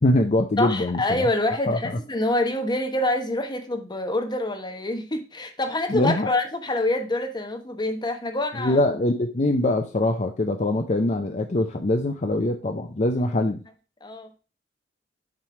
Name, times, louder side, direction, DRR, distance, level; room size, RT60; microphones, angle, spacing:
voice 1, 0.0-1.3 1.7-2.0 5.9-6.3 8.6-13.6, left 1 dB, 40° left, 4 dB, 0.6 m, -23 dB
voice 2, 0.6-8.8 14.0-14.3, left 1 dB, 25° left, 5 dB, 1.1 m, -26 dB
7.4 x 3.3 x 5.8 m, 0.33 s
head